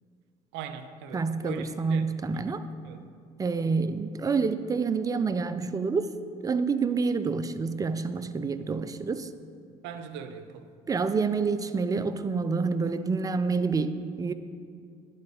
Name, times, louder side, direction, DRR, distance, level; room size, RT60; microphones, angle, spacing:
voice 1, 0.5-3.0 9.8-10.7, right 7 dB, 70° right, 10 dB, 0.5 m, -41 dB
voice 2, 1.1-2.6 3.4-6.1 6.4-9.3 10.9-14.3, right 4 dB, 20° right, 11 dB, 0.4 m, -28 dB
10.5 x 3.8 x 3.8 m, 2.3 s
hypercardioid pair, 65°, 19 cm